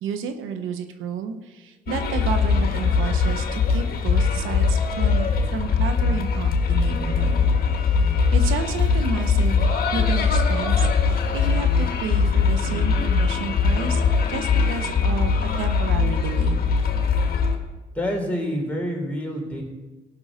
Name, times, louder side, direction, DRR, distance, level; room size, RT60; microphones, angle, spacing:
voice 1, 0.0-7.4 8.3-16.6, right 6 dB, 85° right, 8 dB, 1.0 m, -31 dB
sound 1, 1.9-17.6, left 5 dB, 50° left, 1.8 m, -21 dB
voice 2, 17.9-19.6, equal, 5° left, -1 dB, 3.8 m, -27 dB
17.5 x 6.2 x 5.0 m, 1.2 s
cardioid pair, 90°, 20 cm